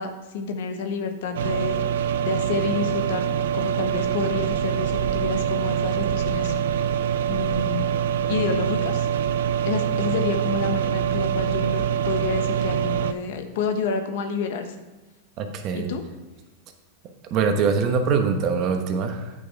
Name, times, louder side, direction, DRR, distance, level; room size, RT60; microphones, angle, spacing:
voice 1, 0.0-1.8 2.2-3.3 3.5-6.5 7.3-7.9 8.3-9.1 9.6-14.7 15.7-16.0, left 5 dB, 70° left, 6 dB, 1.1 m, -29 dB
sound 1, 1.3-13.1, right 9 dB, 80° right, 0.5 m, -24 dB
voice 2, 15.4-15.9 17.2-19.3, right 5 dB, 45° right, 5 dB, 1.1 m, -23 dB
9.2 x 5.2 x 4.6 m, 1.1 s
hypercardioid pair, 120°, 0 cm